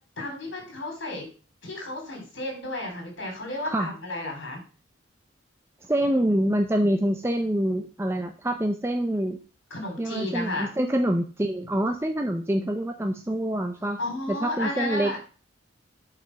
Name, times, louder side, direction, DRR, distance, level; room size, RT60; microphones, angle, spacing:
voice 1, 0.2-1.3 1.6-4.6 9.7-10.7 14.0-15.2, left 1 dB, 65° left, 1 dB, 4.3 m, -32 dB
voice 2, 5.9-9.4 10.0-14.0 14.3-15.2, right 1 dB, 10° right, 4 dB, 0.6 m, -26 dB
8.0 x 5.0 x 6.2 m, 0.36 s
head